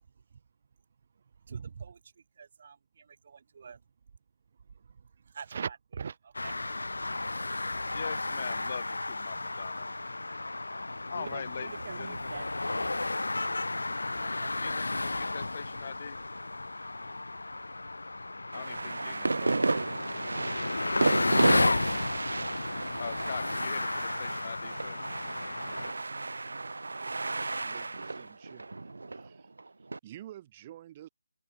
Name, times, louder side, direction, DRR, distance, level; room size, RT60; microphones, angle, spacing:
voice 1, 1.5-2.0 2.4-3.8 4.7-6.9 11.1-13.1 13.5-13.6 13.9-14.5, right 6 dB, 50° right, 1.5 m, -43 dB
sound 1, 6.3-25.9, left 2 dB, 90° left, 0.3 m, -33 dB
voice 2, 7.8-9.9 11.1-12.3 14.6-16.2 18.5-19.9 23.0-25.0, left 7 dB, 45° left, 2.2 m, -42 dB
sound 2, 18.5-30.0, right 3 dB, 80° right, 0.7 m, -33 dB
voice 3, 27.6-29.5 29.8-31.1, right 12 dB, 30° right, 1.1 m, -50 dB
figure-of-eight pair, 160°, 0 cm